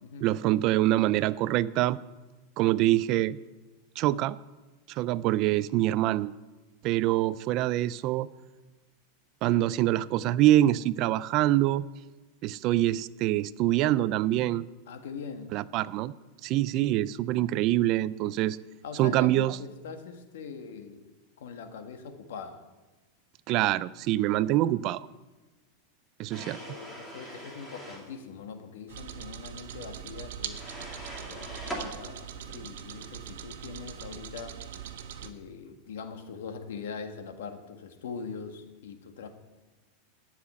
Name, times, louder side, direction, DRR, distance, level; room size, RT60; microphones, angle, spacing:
voice 1, 0.2-2.0 2.6-3.4 4.0-4.4 4.9-6.3 6.8-8.3 9.4-11.8 12.4-14.7 15.5-16.1 16.4-18.6 19.0-19.6 23.5-25.1 26.2-26.6, right 14 dB, 35° right, 18 dB, 0.3 m, -25 dB
voice 2, 14.9-15.5 18.8-21.1 21.4-22.6 26.4-30.6 31.3-34.6 35.2-39.3, left 5 dB, 80° left, 7 dB, 1.7 m, -42 dB
sound 1, 26.3-28.1 30.5-31.9, right 1 dB, 5° left, 2.4 m, -41 dB
sound 2, 28.9-35.3, right 9 dB, 80° right, 1.1 m, -41 dB
14.5 x 5.8 x 9.6 m, 1.2 s
supercardioid pair, 170°, 0 cm